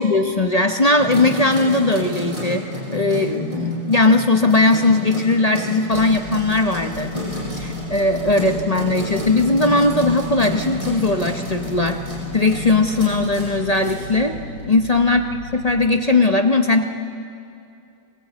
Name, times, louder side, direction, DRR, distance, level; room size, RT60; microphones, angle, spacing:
voice 1, 0.0-2.6 2.9-7.1 7.5-12.0 12.3-14.4 14.7-15.3 15.5-16.9, left 2 dB, 45° left, 5 dB, 0.5 m, -18 dB
sound 1, 1.0-14.8, left 1 dB, 15° right, 6.1 m, -30 dB
sound 2, 5.9-15.9, left 2 dB, 70° left, 1.9 m, -37 dB
24.0 x 19.0 x 8.3 m, 2.5 s
omnidirectional pair, 1.9 m